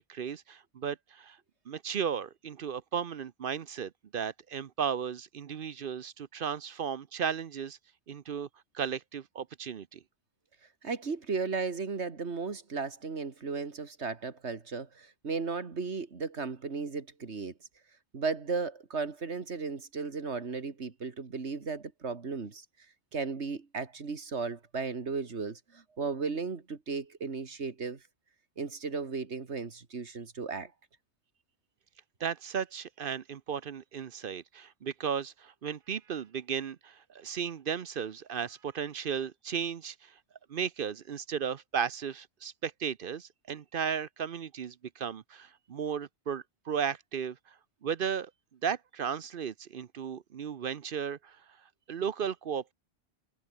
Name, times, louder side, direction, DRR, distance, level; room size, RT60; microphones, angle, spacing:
voice 1, 0.0-1.4 1.7-7.8 8.1-8.5 8.7-10.0 32.2-40.1 40.5-47.5 47.8-48.3 48.6-51.4 51.9-52.7, right 7 dB, 60° right, 0.8 m, -35 dB
voice 2, 10.8-17.5 18.1-22.7 23.1-28.0 28.6-30.7, right 4 dB, 90° right, 2.3 m, -35 dB
omnidirectional pair, 1.1 m